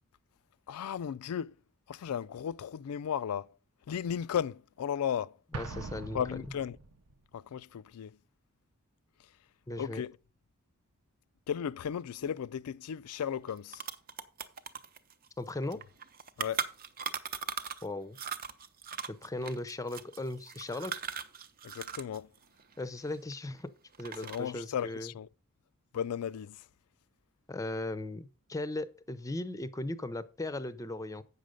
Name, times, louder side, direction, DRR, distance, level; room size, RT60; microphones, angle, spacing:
voice 1, 0.7-1.5 1.9-3.5 3.9-5.4 6.1-6.8 7.3-8.2 9.8-10.2 11.5-13.8 16.4-16.7 21.6-22.3 24.2-25.3 25.9-26.6, left 8 dB, 80° left, 0.3 m, -35 dB
voice 2, 5.5-6.2 9.7-10.0 15.4-15.8 17.8-18.2 19.1-21.0 22.8-23.7 24.0-25.1 27.5-31.2, left 2 dB, 15° left, 0.5 m, -37 dB
Explosion, 5.5-7.2, right 3 dB, 85° right, 0.8 m, -42 dB
sound 1, 13.1-13.2 13.5-17.9 18.1-22.2 22.4-23.6 23.9-24.6, right 6 dB, 40° right, 0.6 m, -39 dB
8.3 x 6.4 x 5.1 m
head